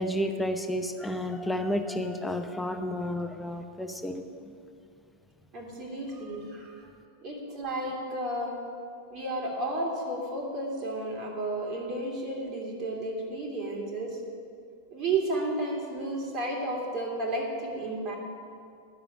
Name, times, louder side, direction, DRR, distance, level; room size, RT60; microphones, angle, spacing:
voice 1, 0.0-4.2, left 1 dB, 5° left, 7 dB, 0.8 m, -31 dB
voice 2, 5.5-6.8 7.2-8.6 9.1-14.2 14.9-18.2, right 2 dB, 35° right, -1 dB, 2.4 m, -32 dB
10.5 x 6.9 x 8.5 m, 2.3 s
figure-of-eight pair, 90°, 0 cm